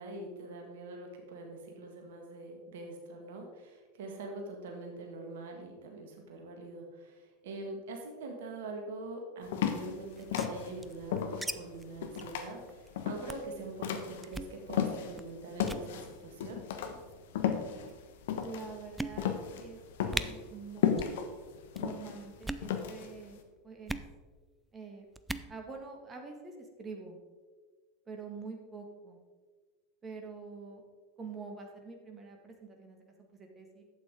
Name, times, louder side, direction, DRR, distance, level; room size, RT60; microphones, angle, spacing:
voice 1, 0.0-16.6, right 2 dB, 60° right, 2 dB, 1.7 m, -44 dB
sound 1, 9.5-15.2 15.6-23.3, left 8 dB, 60° left, 1.1 m, -34 dB
sound 2, 10.1-11.5 11.8-11.9 12.1-12.3 12.7-12.9 13.3-13.5 14.2-14.5 15.1-15.3 15.6-15.9 16.8-17.2 17.9-18.0 18.4-18.5 19.0-19.5 19.8-19.9 20.1-20.3 20.9-21.2 21.4-21.8 22.3-22.7 23.9-24.1 25.1-25.5, right 2 dB, 5° right, 0.5 m, -39 dB
voice 2, 18.4-19.8 20.1-21.1 21.8-24.0 24.7-25.1 25.5-27.2 28.1-29.2 30.0-30.8 31.2-33.8, right 4 dB, 25° right, 2 dB, 1.8 m, -46 dB
12.0 x 8.4 x 3.7 m, 1.4 s
figure-of-eight pair, 85°, 0 cm